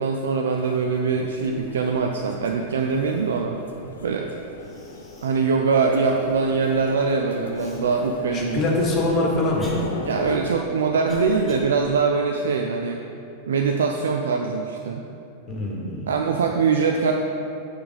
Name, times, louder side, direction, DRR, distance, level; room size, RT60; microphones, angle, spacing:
voice 1, 0.0-3.6 4.0-4.3 5.2-8.6 10.1-13.0 13.5-15.0 16.1-17.1, right 5 dB, 65° right, 2 dB, 0.4 m, -23 dB
sound 1, 0.5-10.4, left 4 dB, 65° left, 0.6 m, -37 dB
Cough, 4.2-4.3 4.6-5.5 6.0-6.1 7.5-7.8 8.6-11.7, equal, 5° left, 1.4 m, -43 dB
voice 2, 8.3-9.8 15.5-16.1, left 2 dB, 30° left, -1 dB, 1.5 m, -24 dB
6.7 x 6.5 x 4.0 m, 2.6 s
figure-of-eight pair, 90°, 0 cm